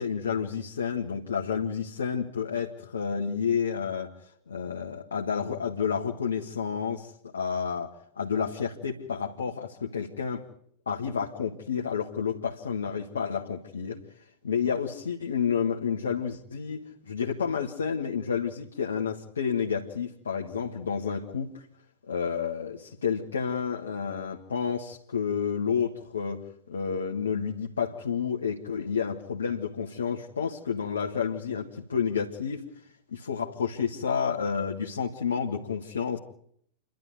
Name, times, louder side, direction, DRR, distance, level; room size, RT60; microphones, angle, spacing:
voice 1, 0.0-4.1 4.5-10.5 10.9-21.7 22.1-32.6 33.1-36.2, left 6 dB, 70° left, 1 dB, 1.6 m, -30 dB
28.5 x 12.0 x 9.3 m, 0.67 s
figure-of-eight pair, 90°, 0 cm